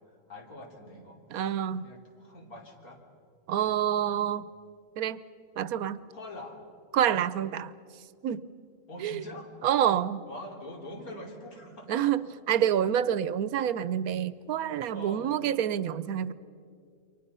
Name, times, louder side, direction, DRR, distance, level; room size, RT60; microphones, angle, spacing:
voice 1, 0.3-1.5 1.8-3.0 3.6-4.1 6.1-6.6 8.9-9.5 10.3-12.1 14.8-15.3, left 1 dB, 80° left, 1 dB, 3.7 m, -44 dB
voice 2, 1.3-1.8 3.5-4.4 5.0-5.2 5.6-6.0 6.9-7.7 8.2-8.4 9.0-9.2 9.6-10.2 11.9-12.2 12.5-16.3, right 10 dB, 80° right, 16 dB, 1.2 m, -27 dB
28.5 x 24.0 x 5.6 m, 2.4 s
omnidirectional pair, 1.5 m